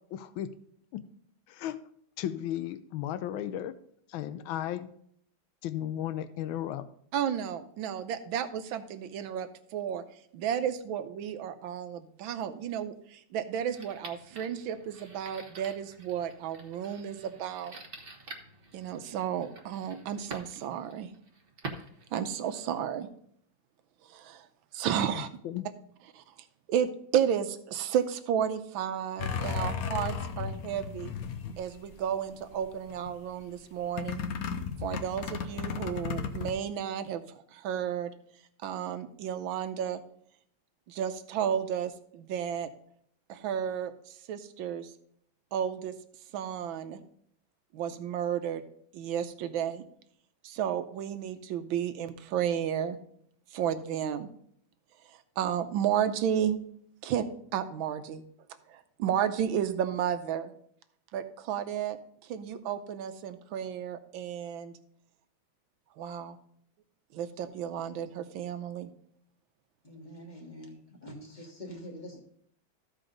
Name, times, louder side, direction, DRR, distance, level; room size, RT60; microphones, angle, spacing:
voice 1, 0.1-0.5 0.9-1.1 1.5-1.8 2.2-3.7 4.1-4.9 5.6-6.9 25.1-25.7, left 11 dB, 85° left, 12 dB, 1.4 m, -35 dB
voice 2, 7.1-10.0 10.3-17.8 18.7-21.1 22.1-23.1 24.1-24.5 24.7-25.3 26.1-26.2 26.7-31.1 31.6-34.2 34.8-38.1 38.6-40.0 40.9-42.7 43.3-44.9 45.5-45.9 46.3-47.0 47.7-48.6 48.9-49.8 50.4-53.0 53.5-54.3 55.4-56.6 57.0-57.3 57.5-58.2 58.7-60.5 61.1-62.0 62.2-64.8 66.0-66.4 67.1-68.9, right 9 dB, 80° right, 10 dB, 1.5 m, -32 dB
sound 1, 13.7-22.8, right 3 dB, 40° right, 1.0 m, -47 dB
sound 2, 29.2-32.2 32.5-33.1 34.0-36.5, left 6 dB, 60° left, 1.0 m, -34 dB
voice 3, 69.8-72.2, equal, 25° left, 1 dB, 1.4 m, -45 dB
14.0 x 4.9 x 3.8 m, 0.67 s
omnidirectional pair, 2.1 m